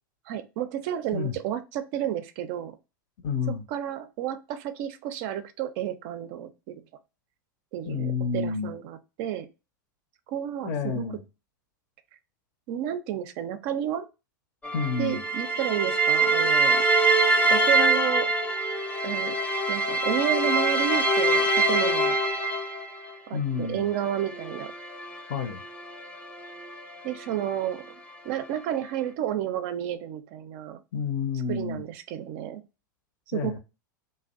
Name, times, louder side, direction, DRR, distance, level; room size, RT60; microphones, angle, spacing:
voice 1, 0.3-2.8 3.7-6.8 7.7-9.5 10.3-11.1 12.7-14.1 15.0-16.8 17.5-18.3 19.0-19.4 19.7-22.2 23.3-24.7 27.0-28.0 28.2-30.8 31.5-32.6 33.3-33.6, right 11 dB, 50° right, 0.4 m, -31 dB
voice 2, 3.2-3.6 7.9-8.7 10.6-11.2 14.7-15.2 23.3-23.8 25.3-25.6 30.9-31.8 33.3-33.6, left 5 dB, 50° left, 0.6 m, -29 dB
sound 1, 14.6-23.1 23.9-27.2, right 2 dB, 10° left, 0.6 m, -25 dB
2.5 x 2.1 x 2.3 m
hypercardioid pair, 95°, 11 cm